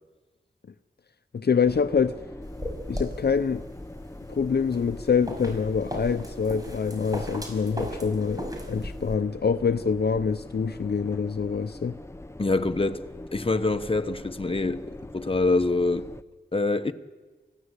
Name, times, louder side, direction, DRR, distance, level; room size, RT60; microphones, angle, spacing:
voice 1, 1.3-2.2 2.9-3.6 4.3-12.0, left 6 dB, 65° left, 0.6 m, -25 dB
sound 1, 1.6-16.2, left 1 dB, 15° left, 0.7 m, -42 dB
sound 2, 2.4-9.1, equal, 20° right, 5.8 m, -37 dB
voice 2, 12.4-13.0 13.3-16.1 16.5-16.9, left 3 dB, 30° left, 1.2 m, -25 dB
28.5 x 15.5 x 8.2 m
wide cardioid pair, 80°, 18 cm